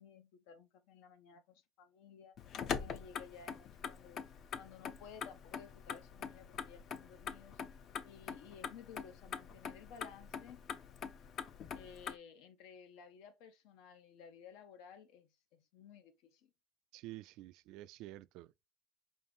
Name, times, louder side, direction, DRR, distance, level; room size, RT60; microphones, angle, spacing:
voice 1, 0.0-2.4 2.8-4.2 4.6-7.6 8.0-10.6 11.7-16.5, left 7 dB, 80° left, 0.9 m, -56 dB
Motor vehicle (road), 2.4-12.2, left 7 dB, 45° left, 0.5 m, -44 dB
voice 2, 16.9-18.7, right 16 dB, 70° right, 0.3 m, -50 dB
5.4 x 2.5 x 3.4 m
cardioid pair, 150°, 0 cm